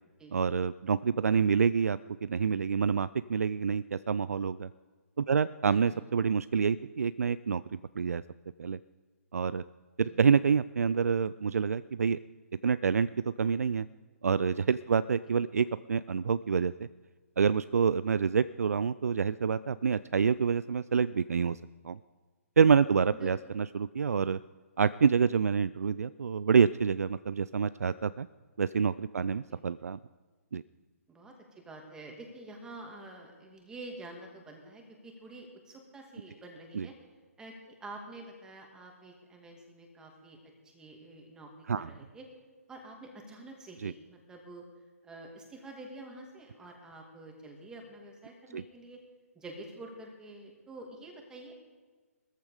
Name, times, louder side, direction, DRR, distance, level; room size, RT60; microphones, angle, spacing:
voice 1, 0.3-4.7 5.2-8.2 8.6-8.8 9.3-9.6 10.0-12.2 12.6-13.1 13.4-13.9 14.2-16.9 17.4-21.6 21.8-22.0 22.6-24.4 24.8-28.3 28.6-30.0 30.5-30.6 36.7-36.9 41.7-41.9 43.8-43.9 48.5-48.6, right 6 dB, 70° right, 16 dB, 0.4 m, -27 dB
voice 2, 5.6-6.1 10.0-10.4 23.1-23.5 29.5-29.6 31.1-36.9 37.4-40.4 40.6-42.2 42.7-44.6 45.0-49.0 49.3-51.6, right 2 dB, 10° right, 1 dB, 2.5 m, -48 dB
17.0 x 14.0 x 5.0 m, 1.4 s
figure-of-eight pair, 135°, 8 cm